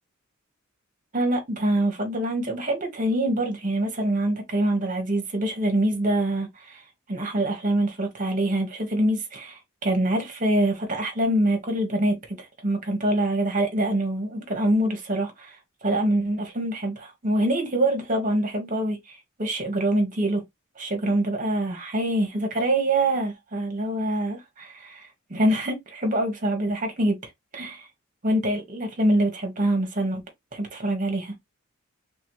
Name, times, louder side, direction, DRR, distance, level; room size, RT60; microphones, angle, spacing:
voice 1, 1.1-6.8 7.1-20.4 20.8-27.2 27.5-27.9 28.2-30.2 30.5-31.3, right 1 dB, 35° right, 1.3 m, -25 dB
3.4 x 3.2 x 3.1 m
head